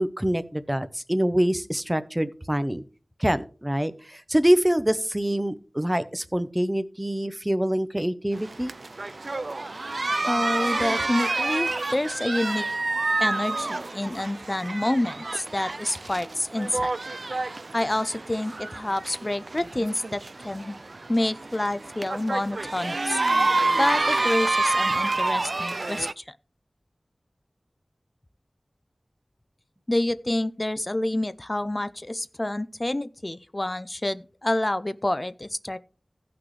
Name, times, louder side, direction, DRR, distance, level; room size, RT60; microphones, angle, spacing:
voice 1, 0.0-2.8 3.2-8.7, equal, 15° right, 0.7 m, -25 dB
sound 1, 8.3-26.1, right 2 dB, 65° right, 0.3 m, -28 dB
voice 2, 10.3-12.7 13.2-16.9 17.7-20.8 21.1-23.2 23.8-26.2 29.9-35.8, left 1 dB, 30° left, 0.4 m, -28 dB
16.0 x 6.0 x 3.2 m
wide cardioid pair, 55°, 0 cm